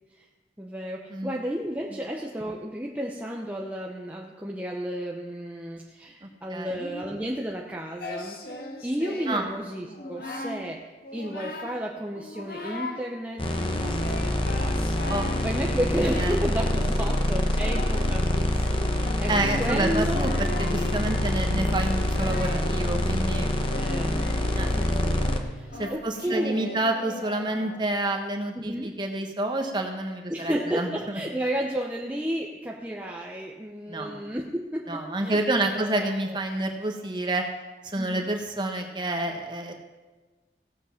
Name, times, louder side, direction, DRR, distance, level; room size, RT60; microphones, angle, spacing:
voice 1, 0.6-8.5 8.8-19.3 19.6-20.3 23.7-24.2 24.7-26.8 28.5-29.0 30.3-36.4 38.0-38.3, equal, 10° right, -1 dB, 0.8 m, -33 dB
voice 2, 6.2-6.9 9.3-9.4 15.1-15.3 16.2-16.3 19.3-20.3 20.6-23.5 24.5-24.7 25.8-31.2 33.9-34.1 34.9-37.4 37.8-39.7, right 2 dB, 25° right, 3 dB, 1.4 m, -29 dB
Singing, 8.0-9.5 9.9-10.7 11.0-11.8 12.2-13.0 13.5-28.0, left 1 dB, 55° left, 1.6 m, -38 dB
sound 1, 13.4-25.4, left 1 dB, 30° left, 1.0 m, -26 dB
16.0 x 8.2 x 5.8 m, 1.3 s
head